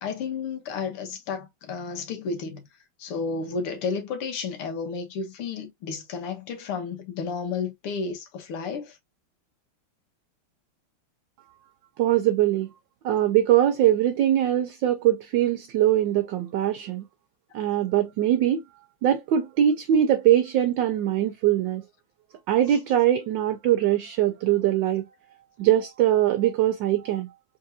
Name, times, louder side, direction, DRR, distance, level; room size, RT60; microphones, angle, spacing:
voice 1, 0.0-2.6 3.0-9.0, left 5 dB, 85° left, 2.1 m, -32 dB
voice 2, 12.0-12.7 13.0-17.0 17.5-18.6 19.0-21.8 22.5-25.1 25.6-27.3, right 11 dB, 75° right, 1.1 m, -22 dB
3.9 x 3.6 x 2.7 m
omnidirectional pair, 2.4 m